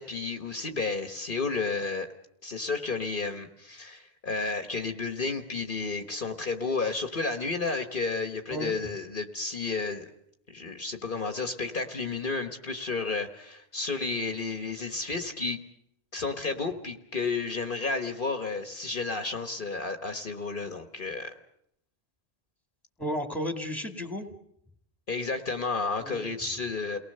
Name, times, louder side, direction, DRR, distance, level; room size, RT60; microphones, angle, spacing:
voice 1, 0.0-2.1 2.4-10.0 10.5-15.6 16.1-21.3 25.1-27.0, left 4 dB, 50° left, 7 dB, 1.4 m, -32 dB
voice 2, 8.5-8.9 23.0-24.3 26.0-26.3, equal, ahead, 5 dB, 2.1 m, -33 dB
29.0 x 19.5 x 6.7 m, 0.73 s
omnidirectional pair, 1.1 m